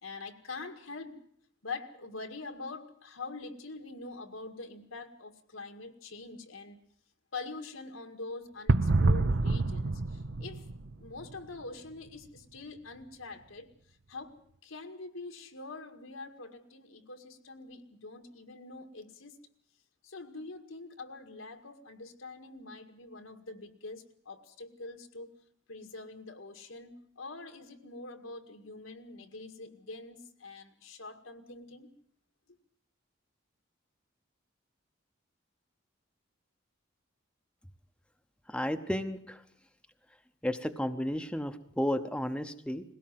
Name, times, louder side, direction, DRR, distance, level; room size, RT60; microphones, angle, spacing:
voice 1, 0.0-1.2 1.6-6.8 7.3-10.6 11.0-13.7 14.1-19.3 20.0-25.3 25.7-31.9, left 3 dB, 85° left, 5 dB, 2.0 m, -44 dB
sound 1, 8.7-11.4, right 3 dB, 60° right, 0.8 m, -27 dB
voice 2, 38.5-39.4 40.4-42.8, equal, 5° left, 7 dB, 0.8 m, -32 dB
20.5 x 17.0 x 7.7 m, 0.65 s
head